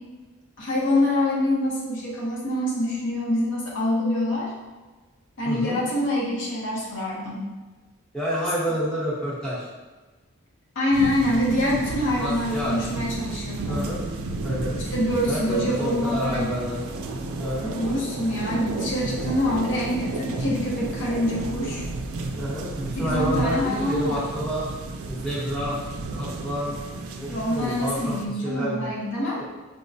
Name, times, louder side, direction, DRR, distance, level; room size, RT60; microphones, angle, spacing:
voice 1, 0.6-4.5 5.4-7.5 10.8-13.8 14.8-16.6 17.6-21.8 23.0-24.2 27.3-29.4, left 1 dB, 55° left, -4 dB, 0.7 m, -25 dB
voice 2, 5.4-5.8 8.1-9.7 12.2-12.8 13.7-14.0 14.4-14.8 15.3-16.8 17.4-17.8 22.4-24.7 25.1-25.8 26.1-26.8 27.2-28.9 29.4-29.5, equal, 5° left, -9 dB, 0.8 m, -29 dB
sound 1, 10.9-28.3, right 2 dB, 80° right, 0.3 m, -32 dB
4.7 x 2.0 x 2.6 m, 1.3 s
head